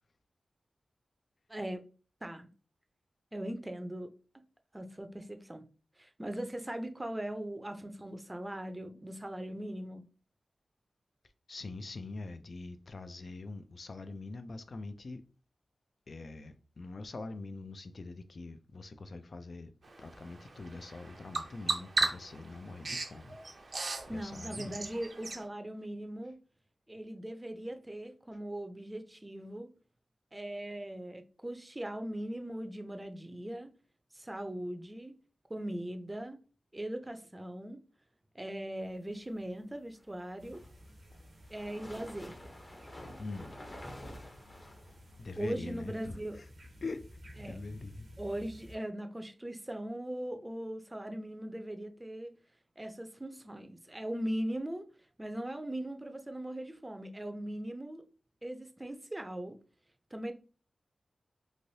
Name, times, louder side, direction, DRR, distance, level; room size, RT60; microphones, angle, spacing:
voice 1, 1.5-1.8 2.2-2.5 3.3-4.1 4.7-5.6 6.0-10.0 24.1-26.3 26.9-29.7 30.3-33.7 34.1-35.1 35.5-36.4 36.7-37.8 38.3-40.6 41.5-42.4 45.4-46.4 47.4-47.6 48.2-52.3 52.8-54.9 55.2-58.0 58.4-59.6 60.1-60.3, right 1 dB, 20° right, 0.5 m, -39 dB
voice 2, 11.5-15.2 16.1-19.7 20.0-23.7 24.1-24.9 43.2-43.5 45.2-46.5 46.8-47.1 47.4-48.1, left 3 dB, 65° left, 0.4 m, -43 dB
Bird vocalization bird call bird song, 19.8-25.4, right 3 dB, 65° right, 0.6 m, -37 dB
sound 1, 40.3-45.4, left 1 dB, 30° left, 0.7 m, -49 dB
sound 2, 40.4-48.8, equal, 85° right, 1.0 m, -54 dB
3.2 x 2.6 x 2.7 m
cardioid pair, 55°, 0 cm